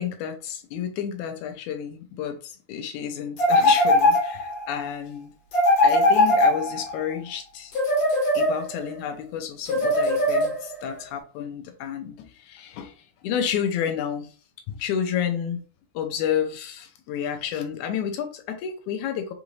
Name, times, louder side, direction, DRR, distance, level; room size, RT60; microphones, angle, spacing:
voice 1, 0.0-5.3 5.8-7.7 8.3-14.3 14.7-15.6 15.9-19.3, left 8 dB, 80° left, 2.1 m, -30 dB
sound 1, 3.4-4.6 5.5-7.0 7.7-8.9 9.7-10.9, left 1 dB, 60° left, 2.6 m, -20 dB
5.9 x 2.5 x 3.2 m
omnidirectional pair, 3.5 m